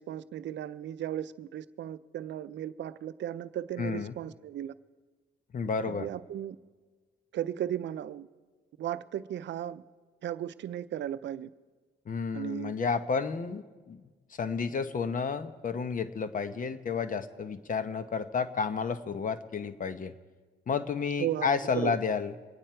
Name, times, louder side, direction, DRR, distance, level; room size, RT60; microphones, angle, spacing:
voice 1, 0.0-4.7 5.9-6.6 7.3-8.3 8.8-9.8 10.2-11.5 12.3-12.7 21.2-22.0, right 11 dB, 65° right, 14 dB, 0.6 m, -35 dB
voice 2, 3.8-4.1 5.5-6.1 12.1-14.0 14.4-20.1 20.7-22.3, left 5 dB, 40° left, 12 dB, 1.0 m, -31 dB
25.0 x 9.3 x 4.5 m, 1.4 s
cardioid pair, 90°, 20 cm